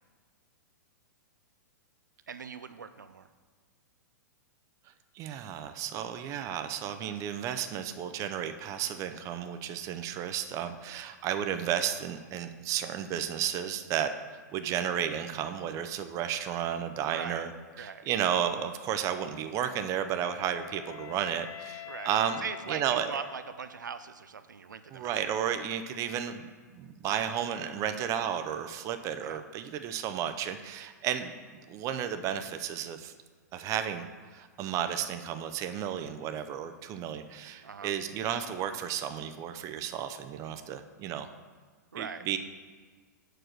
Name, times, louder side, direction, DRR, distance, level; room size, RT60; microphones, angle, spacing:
voice 1, 2.3-3.3 17.1-17.5 17.7-18.1 21.9-22.1 22.4-25.2 29.2-29.4 37.6-37.9 41.9-42.3, right 6 dB, 90° right, 11 dB, 0.4 m, -41 dB
voice 2, 5.2-14.1 14.5-17.5 17.8-23.1 24.9-33.1 33.5-34.1 34.3-41.3 42.0-42.4, right 9 dB, 35° right, 8 dB, 0.5 m, -33 dB
Wind instrument woodwind instrument, 19.7-23.9, left 11 dB, 25° left, 0.4 m, -47 dB
6.0 x 4.9 x 6.5 m, 1.5 s
hypercardioid pair, 115°, 10 cm